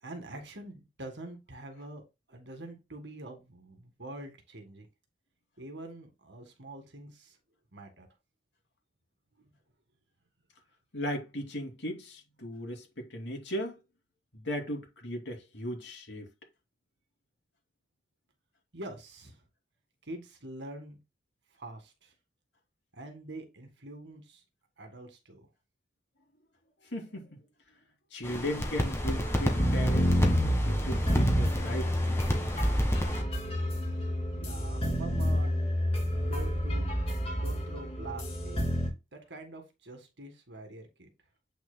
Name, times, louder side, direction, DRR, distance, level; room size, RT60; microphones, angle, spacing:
voice 1, 0.0-2.0 2.3-4.9 5.6-7.4 7.7-8.1 9.4-9.5 18.7-19.4 20.0-21.0 21.6-22.1 22.9-24.4 24.8-25.5 34.4-35.6 36.2-36.9 37.4-38.7 39.1-41.1, right 2 dB, 80° right, 1.8 m, -45 dB
voice 2, 10.9-13.8 14.3-16.3 26.8-27.4 28.1-30.2 30.6-32.2, equal, 90° left, 2.7 m, -37 dB
sound 1, 28.2-33.2, equal, 15° left, 1.4 m, -32 dB
sound 2, 29.0-38.9, equal, 35° left, 2.6 m, -29 dB
8.2 x 6.1 x 2.2 m
head